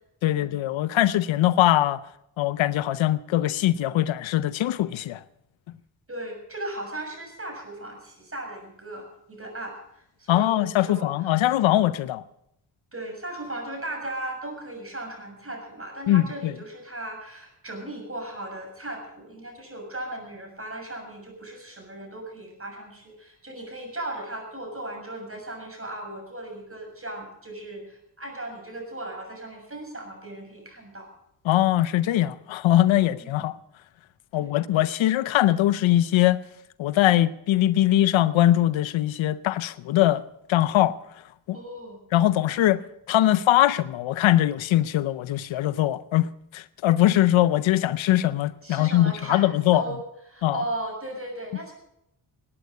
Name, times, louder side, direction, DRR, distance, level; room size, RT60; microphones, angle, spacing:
voice 1, 0.2-2.0 2.4-5.2 10.3-12.2 16.1-16.5 31.4-33.6 34.3-36.4 36.8-40.2 40.5-41.0 41.5-41.6 42.1-42.8 43.1-46.3 46.5-49.8 50.4-50.6, left 14 dB, 85° left, 0.7 m, -21 dB
voice 2, 6.1-11.4 12.9-31.1 33.2-33.5 34.3-34.6 41.5-42.0 48.6-50.0 50.3-51.7, right 1 dB, 30° right, 6.8 m, -37 dB
19.0 x 9.7 x 6.6 m
cardioid pair, 55°, 45 cm